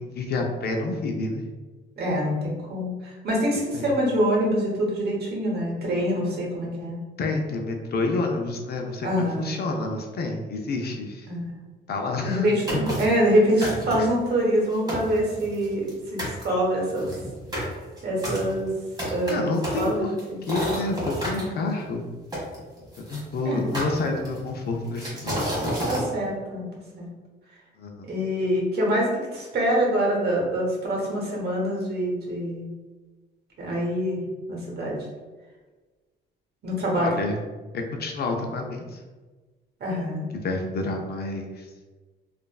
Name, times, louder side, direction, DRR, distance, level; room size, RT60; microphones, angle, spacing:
voice 1, 0.0-1.4 3.7-3.9 7.2-11.3 11.9-12.5 13.6-14.1 19.3-20.1 20.5-22.1 23.1-25.4 27.8-28.1 37.0-37.4 37.7-39.0 40.3-41.7, left 2 dB, 55° left, 2 dB, 0.5 m, -29 dB
voice 2, 2.0-7.0 9.0-9.5 11.3-11.4 12.2-17.1 18.0-18.7 19.1-20.4 21.3-21.7 23.4-23.6 25.9-26.7 27.0-27.1 28.1-32.7 33.6-34.2 34.5-35.0 36.6-37.1 39.8-40.2, equal, 55° right, -2 dB, 1.0 m, -25 dB
sound 1, 12.7-13.2 13.6-14.2 14.6-14.7 14.9-15.9 16.2-16.4 17.0-21.4 22.3-23.2 23.7-24.5 25.0-26.1, equal, 20° right, 1.4 m, -30 dB
3.0 x 2.5 x 2.3 m, 1.3 s
cardioid pair, 90°, 20 cm